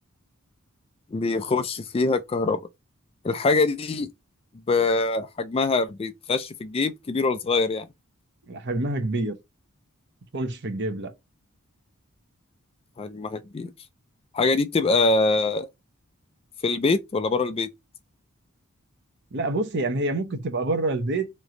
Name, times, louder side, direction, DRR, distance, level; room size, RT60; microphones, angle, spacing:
voice 1, 1.1-2.6 3.2-4.1 4.7-7.9 13.0-13.7 14.3-15.7 16.6-17.7, left 3 dB, 25° left, 0.3 m, -24 dB
voice 2, 8.5-9.4 10.3-11.1 19.3-21.3, right 2 dB, 55° right, 0.8 m, -27 dB
3.2 x 3.0 x 3.7 m
head